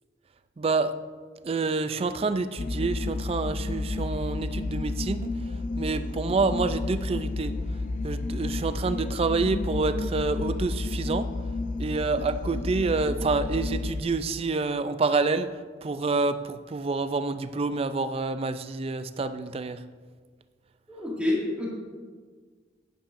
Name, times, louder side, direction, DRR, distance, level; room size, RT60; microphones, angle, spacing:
voice 1, 0.6-0.9 1.4-5.4 5.8-7.5 8.0-11.3 11.8-19.8, right 3 dB, 30° right, 11 dB, 0.3 m, -28 dB
sound 1, 2.6-14.0, left 2 dB, 45° left, 0.4 m, -31 dB
voice 2, 20.9-21.7, left 1 dB, 5° right, -5 dB, 2.0 m, -28 dB
10.0 x 10.0 x 2.6 m, 1.5 s
head